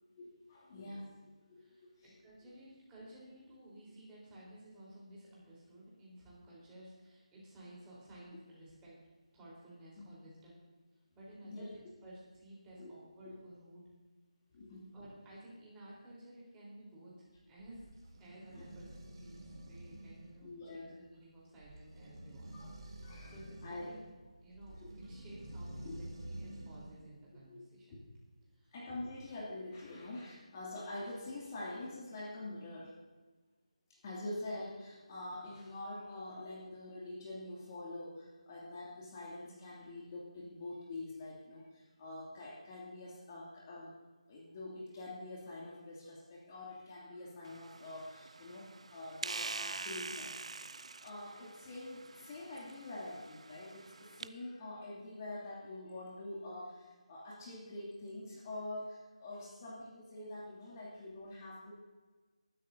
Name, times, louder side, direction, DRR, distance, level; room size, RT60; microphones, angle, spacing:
voice 1, 0.1-1.1 1.5-1.7 2.0-2.1 10.0-10.1 11.4-11.7 12.8-12.9 13.2-13.4 14.5-14.9 18.5-18.7 20.4-20.9 22.5-24.0 24.8-24.9 25.8-26.0 27.5-28.0 28.7-33.0 33.9-43.9 44.3-50.5 50.9-61.8, left 2 dB, 30° left, -5 dB, 2.6 m, -46 dB
voice 2, 1.5-8.9 9.3-10.6 11.1-13.9 14.9-17.9 18.2-22.6 23.0-24.0 24.4-28.0 28.5-28.7, right 1 dB, 10° right, -6 dB, 3.9 m, -55 dB
sound 1, 17.3-27.1, right 1 dB, 45° right, 2.5 m, -50 dB
sound 2, 47.4-54.3, right 3 dB, 65° right, 0.4 m, -45 dB
19.0 x 12.5 x 2.7 m, 1.3 s
figure-of-eight pair, 160°, 4 cm